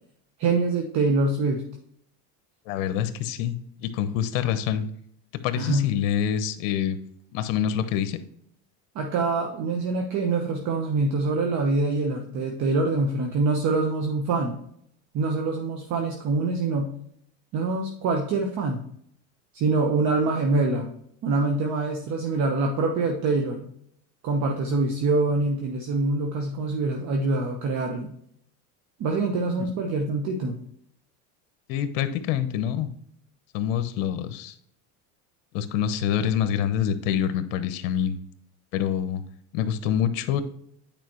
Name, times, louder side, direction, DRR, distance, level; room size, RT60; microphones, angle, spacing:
voice 1, 0.4-1.7 5.6-5.9 8.9-14.6 15.1-16.9 17.5-18.8 19.5-20.9 21.2-23.7 24.2-28.1 29.0-30.6, right 3 dB, 45° right, 2 dB, 1.1 m, -25 dB
voice 2, 2.7-4.9 5.4-7.0 7.3-8.2 29.6-29.7 31.7-32.9 33.5-34.5 35.5-38.2 38.7-39.2 39.5-40.4, left 9 dB, 75° left, 11 dB, 0.9 m, -26 dB
9.1 x 4.9 x 3.0 m, 0.68 s
supercardioid pair, 130°, 39 cm